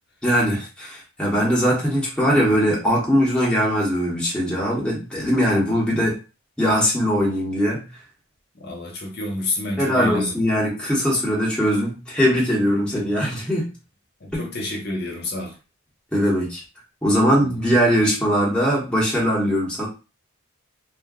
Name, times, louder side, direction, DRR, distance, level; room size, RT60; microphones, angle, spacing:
voice 1, 0.2-6.2 6.6-7.8 9.8-13.7 14.3-14.4 16.1-16.6 17.0-19.9, equal, 5° left, 0.9 m, -21 dB
voice 2, 8.5-10.4 14.2-15.6 17.4-17.6, left 2 dB, 50° left, 0.7 m, -29 dB
2.5 x 2.1 x 3.6 m
head